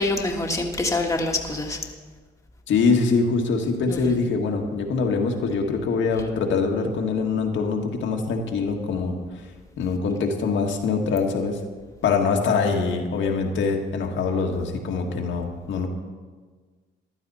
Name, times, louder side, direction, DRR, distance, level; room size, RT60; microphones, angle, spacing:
voice 1, 0.0-1.8 3.9-4.2, left 2 dB, 15° left, 1 dB, 1.7 m, -25 dB
voice 2, 2.7-9.2 9.8-11.6 12.0-15.9, left 4 dB, 75° left, 2 dB, 1.7 m, -24 dB
15.0 x 11.5 x 4.2 m, 1.5 s
cardioid pair, 90°, 20 cm